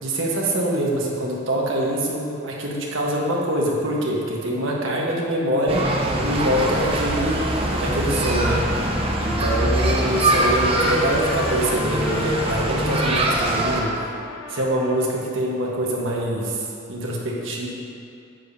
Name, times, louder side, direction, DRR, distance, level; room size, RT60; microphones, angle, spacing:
voice 1, 0.0-5.9 6.2-7.5 7.8-8.6 9.2-14.0 14.5-16.6 16.9-17.7, right 1 dB, 65° right, -3 dB, 1.3 m, -24 dB
sound 1, 5.7-13.8, right 1 dB, 30° right, 0.7 m, -23 dB
Trumpet, 8.2-15.3, left 4 dB, 80° left, 0.6 m, -35 dB
9.3 x 7.1 x 2.7 m, 2.7 s
head